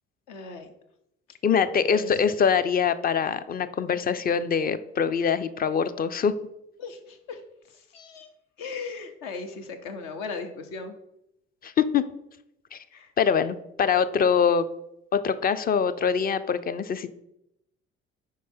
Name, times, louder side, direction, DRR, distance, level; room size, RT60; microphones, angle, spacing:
voice 1, 0.3-0.7 1.9-2.4 6.8-7.4 7.9-8.3 8.6-11.0 12.9-13.1, left 4 dB, 65° left, 6 dB, 0.8 m, -37 dB
voice 2, 1.4-6.3 11.6-12.0 12.7-12.8 13.2-14.7 15.1-17.2, left 6 dB, 30° left, 12 dB, 0.4 m, -24 dB
4.7 x 4.6 x 4.3 m, 0.82 s
hypercardioid pair, 50°, 33 cm